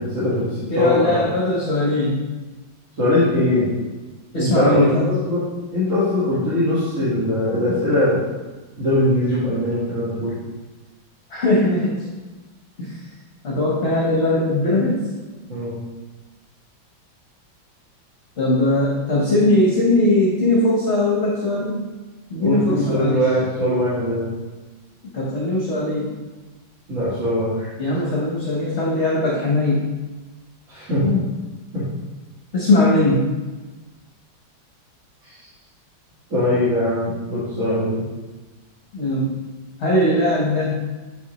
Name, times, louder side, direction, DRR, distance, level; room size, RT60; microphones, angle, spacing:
voice 1, 0.0-1.2 3.0-3.7 4.3-8.2 8.8-10.4 15.5-15.8 22.4-24.3 26.9-27.7 30.7-31.2 31.7-31.8 35.2-35.5 36.3-38.0, left 1 dB, 40° right, -11 dB, 1.8 m, -21 dB
voice 2, 0.7-2.2 4.3-5.1 11.3-11.9 12.8-13.0 13.4-15.1 18.4-21.8 22.3-23.2 25.1-26.2 27.8-29.8 32.5-33.3 38.9-39.3 39.8-40.9, left 1 dB, 45° left, -4 dB, 1.1 m, -20 dB
8.2 x 4.1 x 3.0 m, 1.2 s
omnidirectional pair, 2.2 m